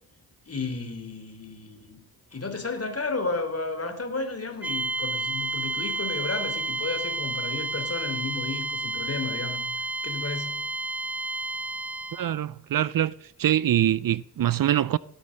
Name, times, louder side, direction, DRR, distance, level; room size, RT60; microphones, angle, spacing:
voice 1, 0.5-2.0 2.3-9.6 10.0-10.6, left 3 dB, 40° left, 3.5 m, -32 dB
sound 1, 4.6-12.3, right 2 dB, 5° right, 0.7 m, -31 dB
voice 2, 12.1-13.1 13.4-15.0, right 11 dB, 60° right, 0.6 m, -24 dB
18.5 x 11.5 x 6.5 m
cardioid pair, 80°, 39 cm